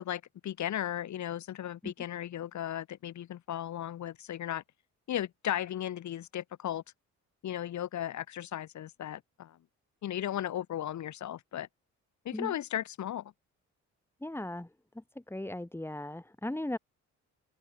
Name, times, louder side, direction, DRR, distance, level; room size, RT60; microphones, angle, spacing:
voice 1, 0.0-4.6 5.1-6.8 7.4-9.6 10.0-11.7 12.2-13.3, left 11 dB, 70° left, 3.3 m, -36 dB
voice 2, 14.2-14.7 15.3-16.8, left 1 dB, 10° left, 5.7 m, -37 dB
open air
cardioid pair, 90°, 30 cm